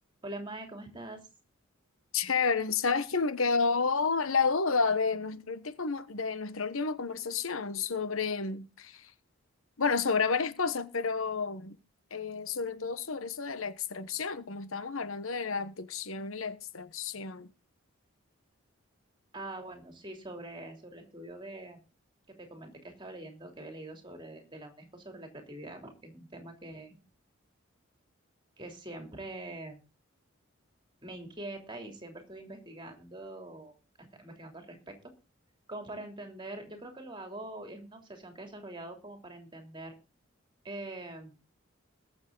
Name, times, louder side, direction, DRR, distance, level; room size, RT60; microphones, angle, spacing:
voice 1, 0.2-1.3 19.3-21.8 22.3-27.0 28.6-29.8 31.0-35.1 35.7-40.0 40.6-41.4, right 2 dB, 25° right, 3.0 m, -44 dB
voice 2, 2.1-9.1 9.8-11.8 12.1-17.5, left 5 dB, 80° left, 1.1 m, -30 dB
21.0 x 7.3 x 3.9 m
head